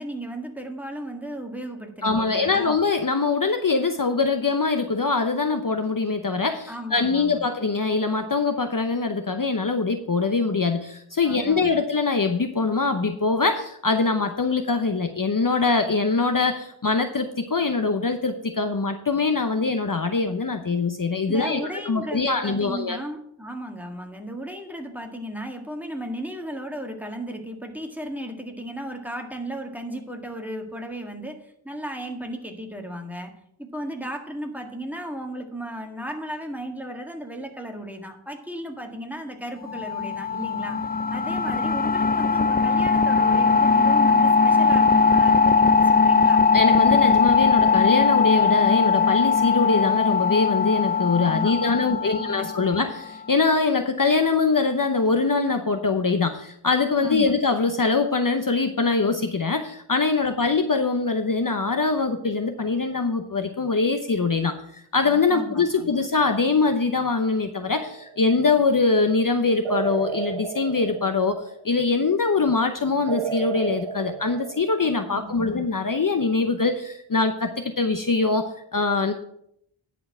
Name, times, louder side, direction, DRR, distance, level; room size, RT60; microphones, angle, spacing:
voice 1, 0.0-2.7 6.7-7.5 11.2-11.8 21.3-40.8 41.1-46.4 51.3-52.8 57.0-57.3 60.2-60.3 65.3-66.0 75.1-75.6, equal, 5° right, 3 dB, 1.8 m, -35 dB
voice 2, 2.0-23.0 46.5-79.1, left 4 dB, 40° left, 7 dB, 0.8 m, -23 dB
sound 1, 39.7-53.1, left 5 dB, 20° left, 0.4 m, -20 dB
sound 2, 67.7-68.3 69.7-71.7 73.1-75.2, right 6 dB, 70° right, 0.8 m, -32 dB
10.5 x 4.5 x 7.4 m, 0.72 s
wide cardioid pair, 40°, 49 cm